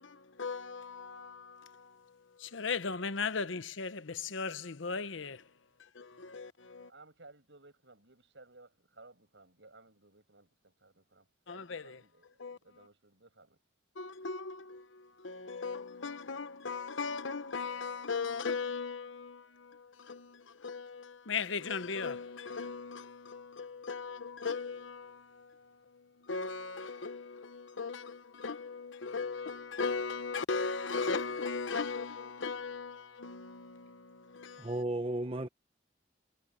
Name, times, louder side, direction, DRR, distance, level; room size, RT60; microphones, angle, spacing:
voice 1, 0.0-5.5 5.8-6.9 11.5-12.0 12.4-12.9 13.9-34.8, left 4 dB, 85° left, 1.0 m, -38 dB
voice 2, 6.8-13.6, right 2 dB, 70° right, 6.2 m, -59 dB
voice 3, 34.6-35.5, right 1 dB, 30° right, 0.9 m, -34 dB
head